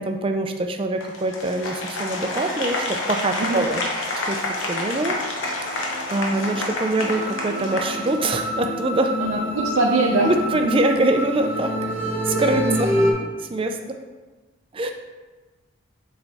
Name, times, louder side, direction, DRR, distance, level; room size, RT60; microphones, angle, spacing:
voice 1, 0.0-3.8 4.2-5.2 5.6-9.1 10.2-11.7 12.2-12.9 13.4-13.8 14.7-14.9, right 2 dB, 25° right, 5 dB, 0.4 m, -24 dB
Applause, 1.0-8.6, left 2 dB, 65° left, 0.9 m, -29 dB
sound 1, 4.2-13.1, equal, 10° right, 1.4 m, -28 dB
voice 2, 9.2-10.3 10.6-10.7 12.5-12.9, right 3 dB, 80° right, -2 dB, 0.6 m, -23 dB
6.9 x 3.3 x 4.1 m, 1.3 s
head